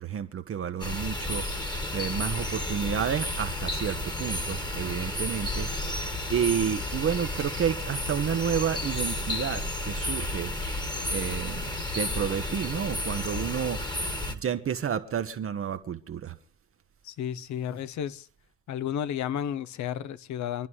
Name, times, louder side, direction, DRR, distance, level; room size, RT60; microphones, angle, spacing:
voice 1, 0.0-5.7 6.3-10.5 11.1-13.8 14.3-16.4, right 8 dB, 25° right, 1.0 m, -30 dB
sound 1, 0.8-14.4, left 1 dB, 10° left, 1.6 m, -32 dB
voice 2, 17.0-18.3 18.7-20.7, left 9 dB, 35° left, 0.8 m, -32 dB
26.5 x 11.0 x 3.1 m
hypercardioid pair, 80°, 48 cm